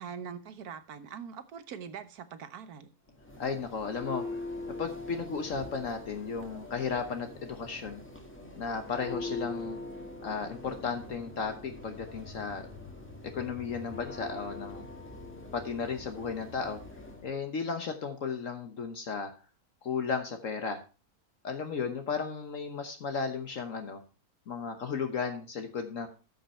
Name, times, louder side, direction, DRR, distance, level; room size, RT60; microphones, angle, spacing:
voice 1, 0.0-2.9, right 7 dB, 85° right, 1.5 m, -43 dB
Church bell, 3.1-17.3, left 2 dB, 10° left, 1.7 m, -43 dB
voice 2, 3.4-4.4 4.8-8.0 8.6-9.8 10.2-12.7 13.3-14.8 15.5-16.8 17.2-19.3 19.8-20.8 21.4-24.0 24.5-26.1, left 5 dB, 60° left, 1.4 m, -34 dB
13.0 x 5.6 x 4.3 m
omnidirectional pair, 1.6 m